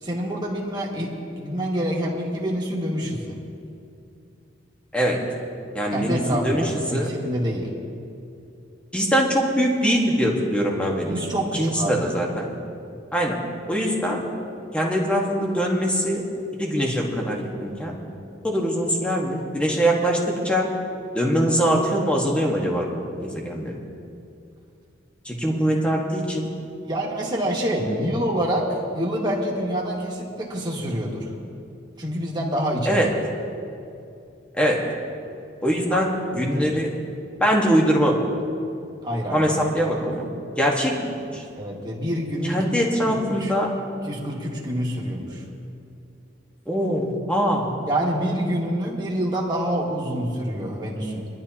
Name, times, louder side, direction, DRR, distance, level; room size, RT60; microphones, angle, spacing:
voice 1, 0.0-3.4 5.9-7.7 11.1-12.1 26.8-31.3 31.9-33.1 35.9-36.0 36.3-36.7 39.0-39.5 41.6-42.6 43.4-43.5 44.0-45.4 47.9-51.3, equal, 20° right, -3 dB, 1.9 m, -27 dB
voice 2, 5.7-7.1 8.9-11.1 11.5-12.5 13.1-13.4 13.7-14.2 14.7-16.2 16.6-17.9 18.4-20.7 21.1-22.9 23.2-23.7 25.2-26.5 27.9-28.0 32.9-33.1 34.6-34.8 35.6-36.9 37.4-38.2 39.3-40.3 40.6-41.4 42.5-43.7 46.7-47.7, equal, 5° left, -1 dB, 1.5 m, -22 dB
22.5 x 11.5 x 2.9 m, 2.6 s
head